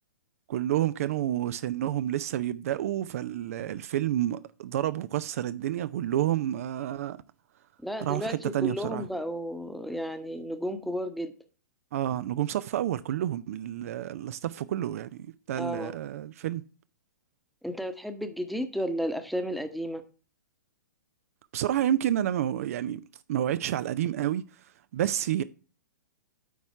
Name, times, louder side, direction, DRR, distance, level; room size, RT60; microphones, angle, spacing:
voice 1, 0.5-7.2 8.0-9.1 11.9-16.6 21.5-23.0 23.3-24.4 24.9-25.4, right 12 dB, 50° right, 0.4 m, -29 dB
voice 2, 7.8-11.3 15.6-15.9 17.6-20.0, equal, ahead, 0.9 m, -33 dB
9.2 x 4.2 x 5.6 m
figure-of-eight pair, 110°, 10 cm